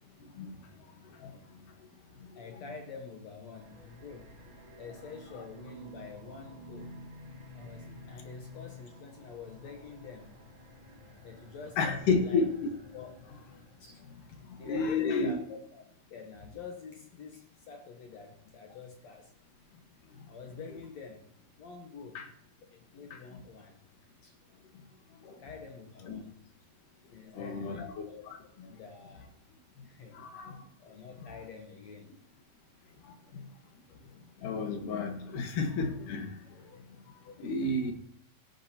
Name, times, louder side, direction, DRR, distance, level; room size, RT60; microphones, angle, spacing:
voice 1, 2.3-4.4 4.8-7.0 7.5-10.3 11.2-12.5 12.9-13.1 13.8-14.0 14.3-15.8 16.1-19.3 20.3-21.3 21.6-22.2 22.7-23.8 24.2-24.4 25.4-26.4 27.1-29.3 29.8-30.2 30.8-32.2, left 5 dB, 80° left, 3 dB, 1.5 m, -47 dB
sound 1, 3.5-14.1, left 1 dB, 60° right, 0.5 m, -51 dB
voice 2, 11.8-12.7 14.6-15.4 22.1-22.3 23.1-23.2 25.3-25.4 26.1-26.2 27.3-28.0 30.2-30.6 34.4-36.3 37.4-37.9, left 3 dB, 60° left, 4 dB, 2.7 m, -31 dB
16.5 x 11.5 x 2.9 m, 0.71 s
omnidirectional pair, 4.7 m